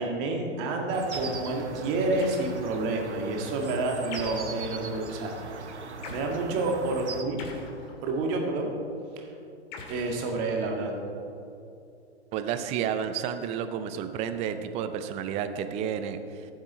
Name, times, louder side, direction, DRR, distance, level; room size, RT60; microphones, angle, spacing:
voice 1, 0.0-5.3 6.1-7.4 8.0-8.7 9.9-10.9, right 2 dB, 35° right, 1 dB, 1.9 m, -29 dB
sound 1, 0.9-7.2, right 4 dB, 85° right, 1.1 m, -40 dB
sound 2, 1.1-1.5 2.2-2.8 4.1-4.6 6.0-6.3 7.4-8.3 9.7-10.8, left 4 dB, 45° left, 2.0 m, -43 dB
voice 2, 12.3-16.5, right 8 dB, 20° right, 10 dB, 0.5 m, -31 dB
14.5 x 7.4 x 4.2 m, 2.7 s
hypercardioid pair, 115°, 34 cm